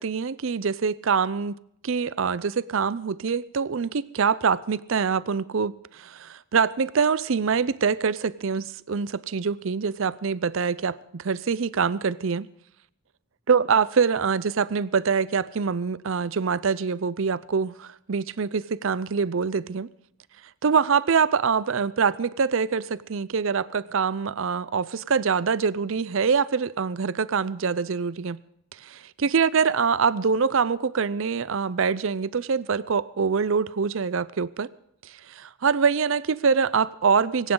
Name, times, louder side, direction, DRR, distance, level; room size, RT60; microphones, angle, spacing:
voice 1, 0.0-1.6 1.8-12.5 13.5-19.9 20.6-28.4 28.8-34.7 35.0-37.5, right 5 dB, 65° right, 0.5 m, -24 dB
21.0 x 17.5 x 3.9 m
head